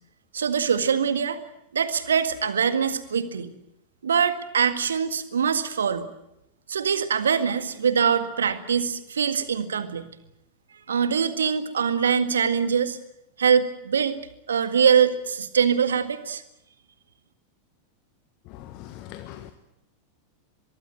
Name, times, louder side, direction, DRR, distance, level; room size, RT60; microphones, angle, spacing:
voice 1, 0.3-1.4 1.7-3.5 4.0-6.1 6.7-10.0 10.9-13.0 13.4-14.2 14.5-16.4, right 7 dB, 70° right, 1.8 m, -23 dB
voice 2, 18.6-19.5, left 12 dB, 40° left, 1.4 m, -41 dB
24.0 x 22.0 x 7.8 m
figure-of-eight pair, 90°, 0 cm